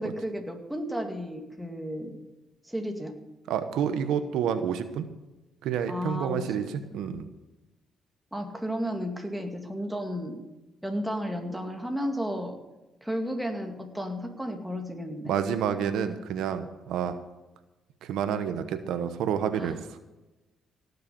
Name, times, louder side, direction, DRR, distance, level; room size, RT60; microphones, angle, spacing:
voice 1, 0.0-2.2 2.6-3.2 5.9-6.6 6.9-7.0 8.3-10.4 10.8-12.6 13.0-15.3 19.5-19.7, equal, 5° right, 3 dB, 2.1 m, -33 dB
voice 2, 3.5-5.1 5.6-6.6 6.9-7.3 15.3-17.2 18.0-19.8, right 8 dB, 85° right, 9 dB, 1.0 m, -29 dB
17.0 x 6.7 x 6.8 m, 1.1 s
cardioid pair, 90°, 0 cm